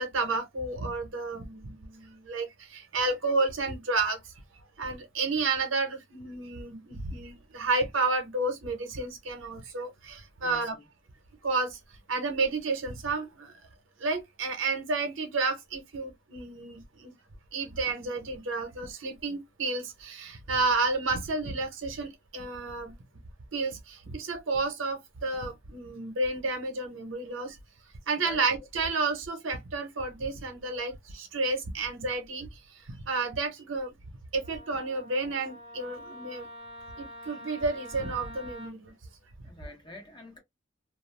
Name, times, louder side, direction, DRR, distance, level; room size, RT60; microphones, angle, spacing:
voice 1, 0.0-10.8 11.4-13.5 14.0-17.1 17.5-22.9 23.5-27.6 28.1-33.9 34.3-36.5 37.0-38.9, right 3 dB, 85° right, 0.9 m, -31 dB
voice 2, 10.4-10.8 28.1-28.7 39.4-40.4, left 1 dB, 20° left, 1.0 m, -47 dB
Wind instrument woodwind instrument, 34.4-38.7, equal, 25° right, 0.8 m, -46 dB
2.4 x 2.2 x 3.2 m
head